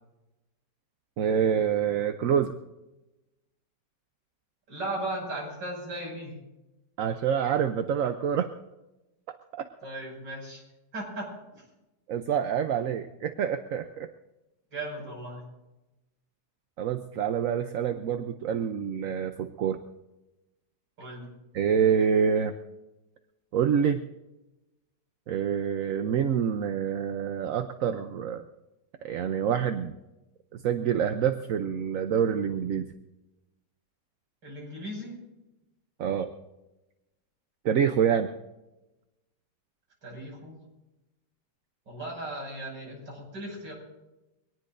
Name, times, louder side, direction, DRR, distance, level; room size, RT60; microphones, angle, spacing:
voice 1, 1.2-2.5 7.0-8.5 9.5-9.6 12.1-14.1 16.8-19.8 21.5-22.5 23.5-24.0 25.3-28.4 29.0-30.0 30.5-32.9 36.0-36.3 37.6-38.3, right 8 dB, 60° right, 8 dB, 1.0 m, -26 dB
voice 2, 4.7-6.4 9.8-10.6 10.9-11.6 14.7-15.4 21.0-21.3 34.4-35.2 40.0-40.6 41.9-43.7, right 1 dB, 90° right, -2 dB, 7.1 m, -37 dB
24.0 x 18.5 x 2.6 m, 1.0 s
omnidirectional pair, 1.9 m